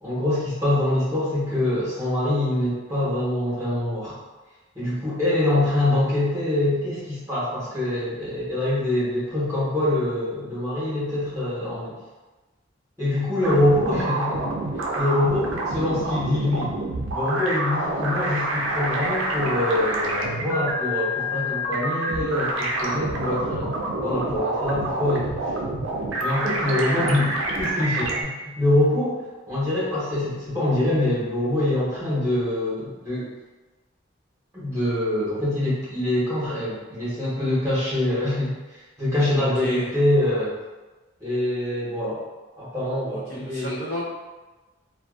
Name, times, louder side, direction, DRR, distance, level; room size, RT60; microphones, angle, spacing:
voice 1, 0.0-4.2 4.7-11.9 13.0-14.5 15.0-16.7 17.1-23.7 24.0-25.3 26.2-29.2 29.5-33.3 34.5-38.5 39.0-40.6 41.2-42.2 42.6-43.8, left 1 dB, 15° right, -11 dB, 1.0 m, -24 dB
sound 1, 13.4-28.2, right 1 dB, 75° right, 0.4 m, -27 dB
voice 2, 39.3-39.9 43.1-44.0, left 1 dB, 65° left, -7 dB, 0.7 m, -32 dB
2.5 x 2.2 x 2.4 m, 1.2 s
head